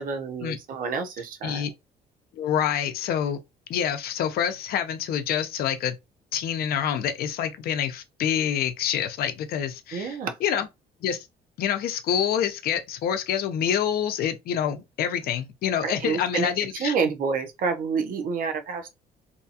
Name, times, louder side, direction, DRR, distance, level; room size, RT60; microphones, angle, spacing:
voice 1, 0.0-1.6 9.9-10.4 15.8-18.9, right 5 dB, 55° right, 0.7 m, -28 dB
voice 2, 2.3-3.4 3.7-5.9 6.3-10.7 11.0-11.2 11.6-16.9, left 9 dB, 65° left, 0.6 m, -27 dB
2.7 x 2.3 x 2.7 m
cardioid pair, 110°, 17 cm